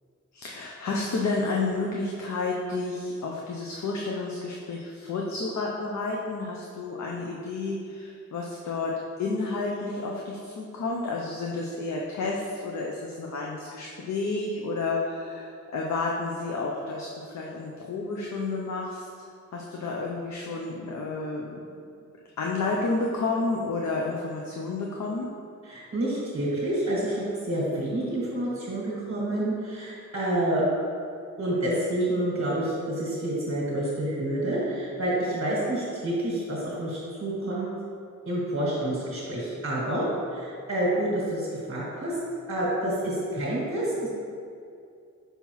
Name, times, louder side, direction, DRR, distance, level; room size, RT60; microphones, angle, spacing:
voice 1, 0.3-19.1 19.5-21.6 22.4-25.3, left 3 dB, 65° left, -2 dB, 0.6 m, -31 dB
voice 2, 25.6-30.7 31.4-37.7 38.2-40.0 40.3-42.2 42.5-44.1, right 1 dB, 50° right, -7 dB, 1.4 m, -28 dB
5.6 x 5.5 x 3.0 m, 2.4 s
wide cardioid pair, 175°, 30 cm